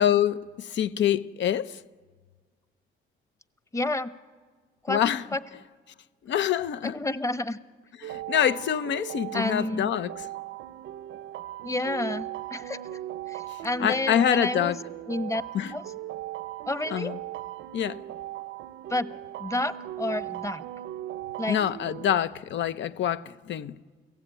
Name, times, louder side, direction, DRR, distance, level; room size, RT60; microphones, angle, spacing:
voice 1, 0.0-1.8 4.9-5.2 6.3-7.0 8.0-10.1 13.5-14.8 15.5-15.7 16.9-17.2 17.7-18.0 21.5-23.8, left 10 dB, 65° left, 0.9 m, -26 dB
voice 2, 3.7-4.2 4.8-5.0 5.3-5.4 6.8-7.6 9.3-9.9 11.6-13.0 13.3-14.7 15.1-15.4 15.7-15.8 16.7-17.1 18.9-19.1 19.4-20.6 21.4-21.6, left 2 dB, 15° left, 1.1 m, -30 dB
sound 1, 8.0-22.2, right 14 dB, 80° right, 0.7 m, -38 dB
29.5 x 16.5 x 9.1 m
cardioid pair, 90°, 20 cm